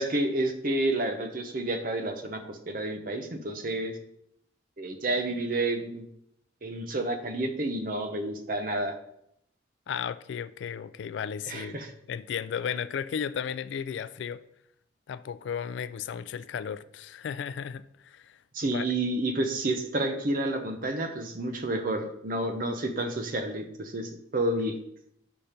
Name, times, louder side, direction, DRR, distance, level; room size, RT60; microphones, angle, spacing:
voice 1, 0.0-3.9 4.8-6.0 6.6-9.0 11.5-11.9 18.5-24.7, right 1 dB, 45° right, 0.7 m, -30 dB
voice 2, 9.9-11.8 12.1-14.4 15.1-18.9, left 7 dB, 75° left, 0.3 m, -34 dB
5.3 x 5.1 x 4.3 m
head